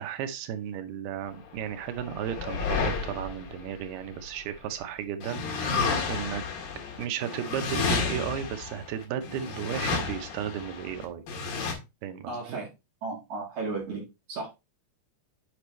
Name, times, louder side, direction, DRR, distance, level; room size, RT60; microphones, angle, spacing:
voice 1, 0.0-6.4 7.0-11.2 12.0-12.6, right 9 dB, 90° right, 9 dB, 2.8 m, -34 dB
sound 1, 1.6-4.7 5.2-11.7, left 5 dB, 70° left, 3.5 m, -31 dB
voice 2, 12.3-12.7 13.0-14.5, right 3 dB, 55° right, -2 dB, 2.9 m, -34 dB
8.4 x 5.3 x 3.1 m, 0.24 s
omnidirectional pair, 4.4 m